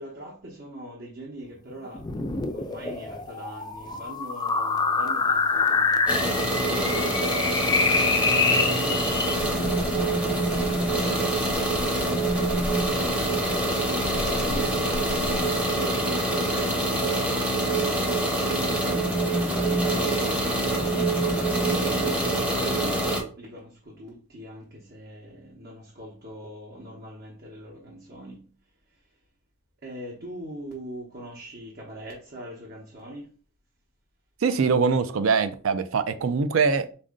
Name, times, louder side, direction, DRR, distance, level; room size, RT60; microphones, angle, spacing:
voice 1, 0.0-2.1 2.5-13.8 14.3-23.1 23.4-28.5 28.9-29.1 29.8-33.3, right 1 dB, 55° right, 1.0 m, -41 dB
sound 1, 1.9-9.4, left 4 dB, 20° left, 0.3 m, -26 dB
sound 2, 6.1-23.2, right 1 dB, 5° right, 0.8 m, -25 dB
sound 3, 9.1-15.9, left 2 dB, 90° left, 0.6 m, -37 dB
voice 2, 34.4-36.9, right 5 dB, 70° right, 0.5 m, -23 dB
4.2 x 2.6 x 3.7 m
head